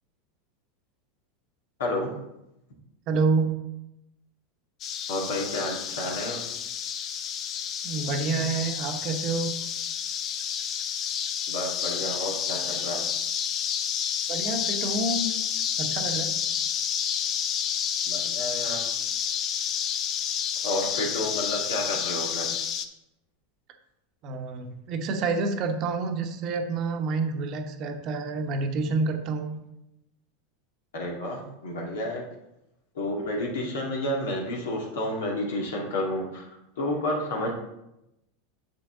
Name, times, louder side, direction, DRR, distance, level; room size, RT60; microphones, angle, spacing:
voice 1, 1.8-2.1 5.1-6.4 11.5-13.0 18.1-18.8 20.6-22.5 30.9-32.2 32.9-36.5 36.8-37.5, left 1 dB, 70° left, -1 dB, 2.0 m, -30 dB
voice 2, 3.1-3.6 7.8-9.5 14.3-15.3 15.8-16.4 24.2-29.6, right 3 dB, 45° right, 6 dB, 1.0 m, -28 dB
sound 1, 4.8-22.8, left 8 dB, 40° left, 0.6 m, -30 dB
7.2 x 6.8 x 3.6 m, 0.88 s
hypercardioid pair, 85°, 0 cm